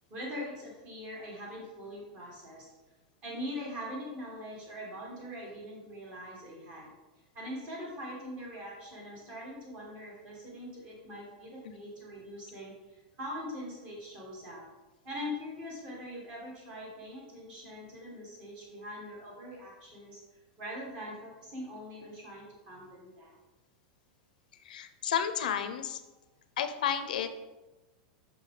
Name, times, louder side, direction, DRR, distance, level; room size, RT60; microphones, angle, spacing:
voice 1, 0.1-2.7 3.2-6.9 7.3-14.6 15.0-20.2 20.6-23.4, equal, 25° right, -3 dB, 1.8 m, -42 dB
voice 2, 24.7-26.0 26.6-27.3, left 8 dB, 90° left, 9 dB, 0.6 m, -31 dB
5.7 x 5.4 x 3.8 m, 1.1 s
supercardioid pair, 180°, 4 cm